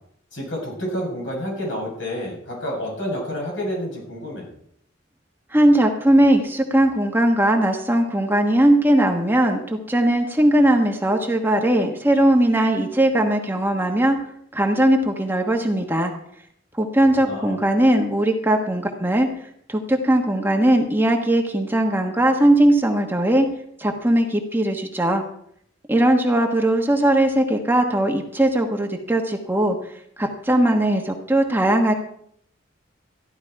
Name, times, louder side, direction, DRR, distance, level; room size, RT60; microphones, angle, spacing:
voice 1, 0.3-4.5 17.2-17.6, equal, 75° left, -2 dB, 7.7 m, -29 dB
voice 2, 5.5-14.2 14.5-16.1 16.7-19.3 19.7-23.5 23.8-25.2 25.9-29.9 30.2-31.9, right 1 dB, 10° right, 3 dB, 1.3 m, -19 dB
14.5 x 11.5 x 4.7 m, 0.69 s
head